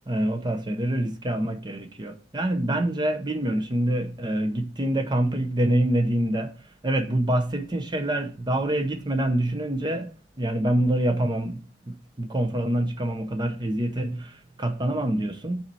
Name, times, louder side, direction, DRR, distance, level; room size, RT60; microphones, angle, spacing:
voice 1, 0.1-6.5 6.8-10.1 10.4-11.6 11.9-15.7, right 1 dB, 25° right, 0.7 m, -26 dB
6.5 x 4.3 x 4.6 m
head